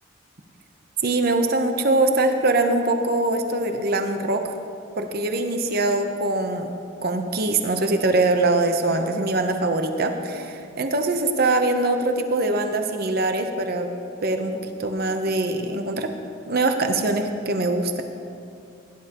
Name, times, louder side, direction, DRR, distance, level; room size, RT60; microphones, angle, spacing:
voice 1, 1.0-4.5 5.0-6.7 7.0-13.9 14.2-16.1 16.5-18.0, right 2 dB, 50° right, 6 dB, 0.7 m, -23 dB
16.5 x 11.0 x 3.0 m, 2.5 s
head